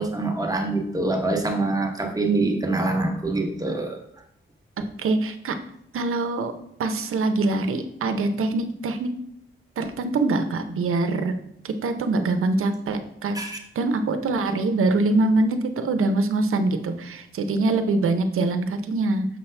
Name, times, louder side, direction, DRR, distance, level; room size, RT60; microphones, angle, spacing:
voice 1, 0.0-4.0 13.3-13.6, right 2 dB, 15° right, 2 dB, 0.9 m, -25 dB
voice 2, 4.8-5.5 5.9-6.5 6.8-9.1 9.8-11.3 11.6-13.4 13.8-19.3, right 2 dB, 90° right, 8 dB, 0.7 m, -24 dB
6.6 x 5.7 x 3.3 m, 0.74 s
wide cardioid pair, 160°, 21 cm